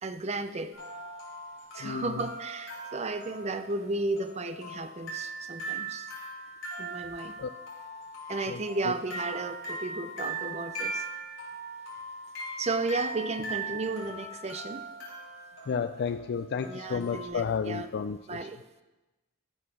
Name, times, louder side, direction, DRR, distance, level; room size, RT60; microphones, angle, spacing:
voice 1, 0.0-0.7 1.7-6.1 6.8-7.3 8.3-11.0 12.6-14.9 16.6-17.9 18.3-18.6, right 3 dB, 30° right, 10 dB, 0.6 m, -34 dB
sound 1, 0.7-17.3, right 2 dB, 80° left, 4.4 m, -40 dB
voice 2, 15.7-18.2, left 6 dB, 55° left, 9 dB, 0.3 m, -31 dB
14.5 x 5.6 x 6.4 m, 1.1 s
head